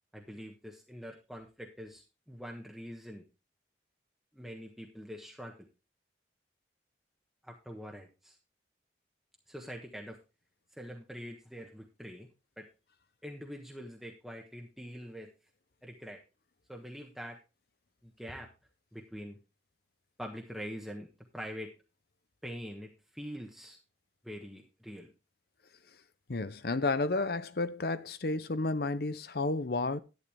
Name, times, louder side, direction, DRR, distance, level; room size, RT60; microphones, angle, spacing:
voice 1, 0.1-3.2 4.3-5.7 7.4-8.4 9.5-10.2 10.7-12.3 12.6-12.7 13.2-15.3 15.8-16.2 16.7-17.4 18.0-18.5 18.9-19.4 20.2-21.7 22.4-23.8 24.2-25.1, equal, ahead, 1.3 m, -44 dB
voice 2, 26.3-30.0, left 3 dB, 60° left, 0.8 m, -31 dB
11.5 x 9.2 x 3.5 m
head